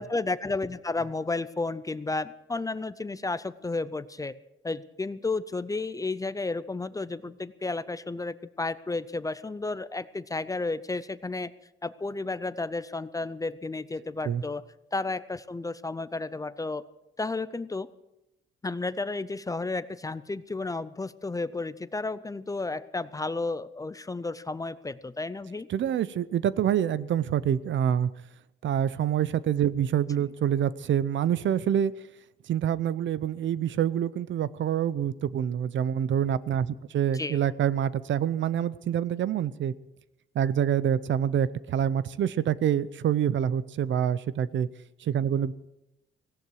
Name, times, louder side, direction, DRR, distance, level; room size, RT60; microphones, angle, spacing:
voice 1, 0.0-4.3 4.6-11.5 11.8-14.6 14.9-16.9 17.2-17.9 18.6-25.7 37.1-37.4, left 3 dB, 15° left, 15 dB, 0.5 m, -32 dB
voice 2, 25.7-28.1 28.6-31.9 32.5-39.7 40.3-44.7 45.0-45.5, right 9 dB, 65° right, 17 dB, 0.7 m, -26 dB
17.5 x 17.0 x 4.8 m, 0.91 s
cardioid pair, 130°, 21 cm